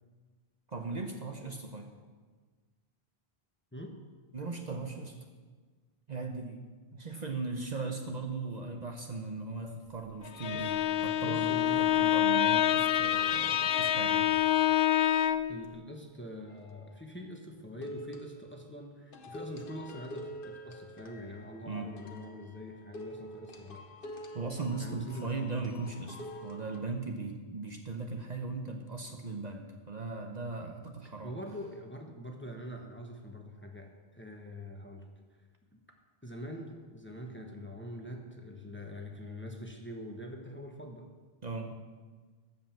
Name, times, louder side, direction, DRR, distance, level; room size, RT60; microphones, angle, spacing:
voice 1, 0.7-1.9 4.3-5.2 6.1-6.6 6.9-10.8 11.0-14.3 21.7-21.9 24.3-31.4 41.4-41.7, right 3 dB, 45° right, 3 dB, 0.9 m, -38 dB
voice 2, 3.7-4.0 10.5-10.7 11.2-12.4 15.5-23.8 24.8-25.3 31.2-35.1 35.7-35.8 36.2-41.1, equal, 10° left, 2 dB, 1.1 m, -44 dB
Bowed string instrument, 10.2-15.6, left 11 dB, 80° left, 0.8 m, -27 dB
sound 1, 16.5-16.9 17.8-18.7 19.1-26.8, equal, 60° left, 1.1 m, -46 dB
13.5 x 5.4 x 7.2 m, 1.4 s
omnidirectional pair, 1.0 m